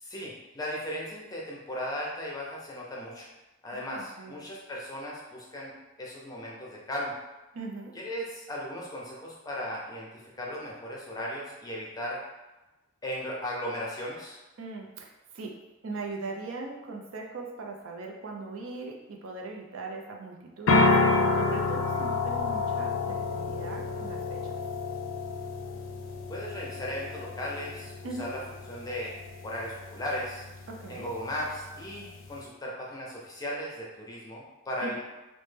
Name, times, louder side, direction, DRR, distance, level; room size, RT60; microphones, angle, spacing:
voice 1, 0.0-3.3 3.6-5.7 6.0-7.1 8.0-10.1 10.3-12.2 13.0-14.4 26.3-27.9 28.2-28.4 28.7-29.1 29.4-30.4 30.9-35.0, equal, 20° left, -4 dB, 0.6 m, -36 dB
voice 2, 3.7-4.4 7.5-7.9 14.6-15.5 15.8-24.5 28.0-28.3 30.7-31.1 34.8-35.0, right 3 dB, 80° right, 1 dB, 0.5 m, -40 dB
sound 1, 20.7-32.4, left 3 dB, 75° left, 0.4 m, -30 dB
3.1 x 2.1 x 3.2 m, 1.1 s
head